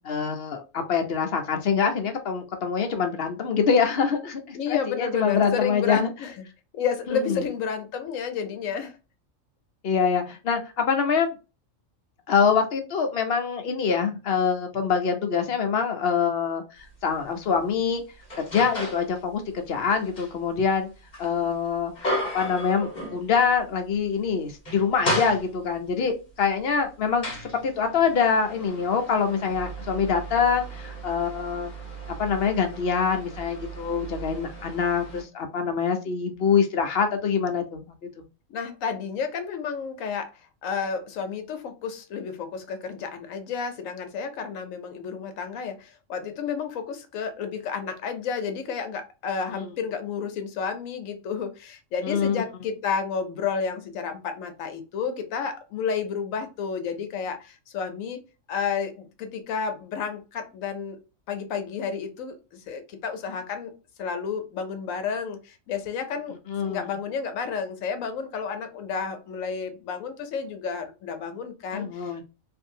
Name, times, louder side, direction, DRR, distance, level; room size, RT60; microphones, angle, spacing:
voice 1, 0.0-6.1 7.1-7.4 9.8-11.4 12.3-18.0 18.4-20.9 21.2-21.9 22.3-31.7 32.1-37.8 38.2-38.3 49.5-49.7 52.0-52.4 66.5-66.9 71.7-72.2, left 6 dB, 55° left, 0.8 m, -25 dB
voice 2, 4.5-6.3 6.7-9.0 38.5-40.3 40.6-58.2 58.5-61.0 61.3-63.7 64.0-66.4 66.6-72.1, left 6 dB, 80° left, 1.1 m, -31 dB
sound 1, 16.8-17.0 17.5-19.1 19.5-23.6 23.9-24.1 24.5-25.9 26.6-35.2, equal, 35° left, 1.2 m, -35 dB
2.7 x 2.6 x 2.6 m
omnidirectional pair, 1.4 m